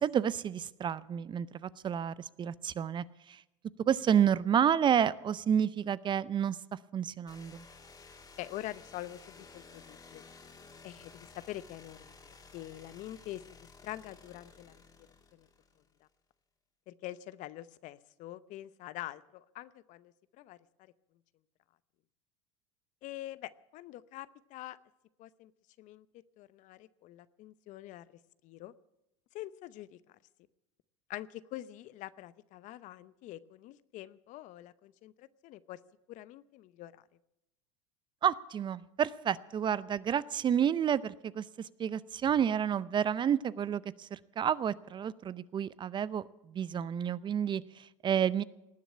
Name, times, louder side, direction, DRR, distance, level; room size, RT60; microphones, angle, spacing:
voice 1, 0.0-3.4 3.8-7.6 38.2-48.4, right 8 dB, 30° right, 18 dB, 0.6 m, -30 dB
sound 1, 7.3-16.0, left 4 dB, 25° left, 2.7 m, -55 dB
voice 2, 8.4-10.2 10.8-13.4 13.8-14.7 15.3-15.5 16.9-20.9 23.0-24.8 25.2-25.5 25.8-26.1 26.4-28.0 28.4-28.7 29.3-30.2 31.1-35.8 36.1-37.0, left 15 dB, 50° left, 17 dB, 0.7 m, -45 dB
19.0 x 7.2 x 9.7 m, 0.91 s
hypercardioid pair, 95°, 16 cm